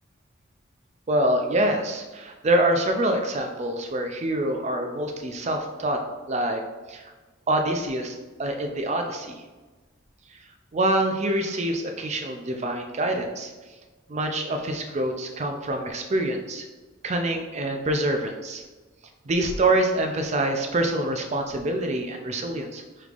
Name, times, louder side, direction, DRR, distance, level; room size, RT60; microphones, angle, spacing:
voice 1, 1.1-6.0 6.3-6.6 6.9-7.0 7.5-9.4 10.7-13.5 14.1-16.6 17.0-18.6 19.3-22.8, right 1 dB, 35° right, 4 dB, 0.4 m, -25 dB
5.2 x 3.2 x 2.4 m, 1.3 s
head